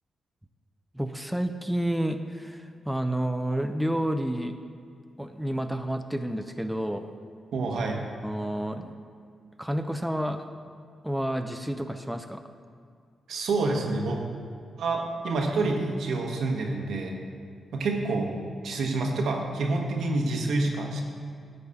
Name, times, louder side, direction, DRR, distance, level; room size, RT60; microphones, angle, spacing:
voice 1, 0.9-4.6 5.2-7.1 8.2-8.9 9.6-10.4 11.0-12.4, right 1 dB, 5° right, 7 dB, 0.5 m, -30 dB
voice 2, 7.5-8.0 13.3-14.2 14.8-17.2 17.7-18.4 18.6-21.0, right 3 dB, 80° right, 1 dB, 1.2 m, -27 dB
10.0 x 4.0 x 7.0 m, 2.2 s
supercardioid pair, 55°, 0 cm